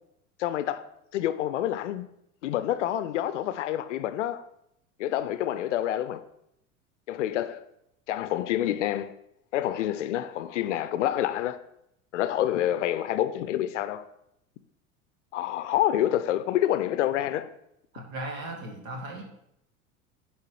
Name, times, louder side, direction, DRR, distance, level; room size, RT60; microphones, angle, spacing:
voice 1, 0.4-0.9 1.1-2.0 2.4-4.5 5.0-6.2 7.1-7.6 8.1-9.1 9.5-11.6 12.1-14.1 15.3-17.5, left 12 dB, 55° left, 0.6 m, -27 dB
voice 2, 17.9-19.2, right 1 dB, 65° right, 2.1 m, -37 dB
10.5 x 4.6 x 4.6 m
figure-of-eight pair, 80°, 43 cm